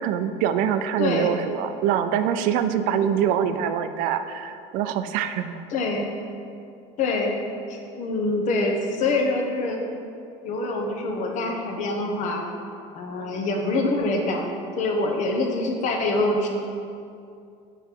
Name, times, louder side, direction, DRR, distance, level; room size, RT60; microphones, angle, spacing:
voice 1, 0.0-5.6, right 9 dB, 70° right, 10 dB, 0.4 m, -24 dB
voice 2, 1.0-1.3 3.4-3.5 5.7-6.1 7.0-7.4 7.7-9.8 10.4-12.4 12.9-16.5, left 2 dB, 55° left, 2 dB, 0.9 m, -25 dB
4.8 x 4.6 x 4.5 m, 2.5 s
supercardioid pair, 105°, 15 cm